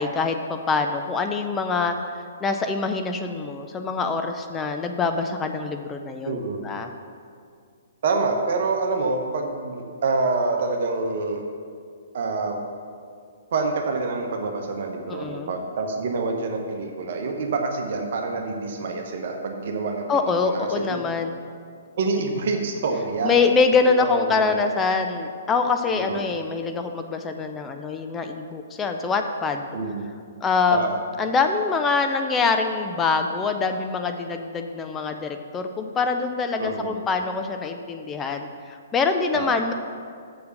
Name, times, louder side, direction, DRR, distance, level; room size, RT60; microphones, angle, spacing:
voice 1, 0.0-2.0 2.4-6.4 6.6-6.9 15.1-15.5 20.1-21.4 23.2-29.7 30.4-30.9 31.2-39.7, left 4 dB, 15° left, 5 dB, 0.5 m, -24 dB
voice 2, 6.2-6.6 8.0-11.4 12.1-12.6 13.5-21.0 22.0-23.4 23.8-24.6 25.8-26.3 29.7-30.1 30.7-31.0 36.6-37.0 39.3-39.6, right 3 dB, 50° right, 2 dB, 1.0 m, -27 dB
6.8 x 6.7 x 6.6 m, 2.2 s
figure-of-eight pair, 125°, 0 cm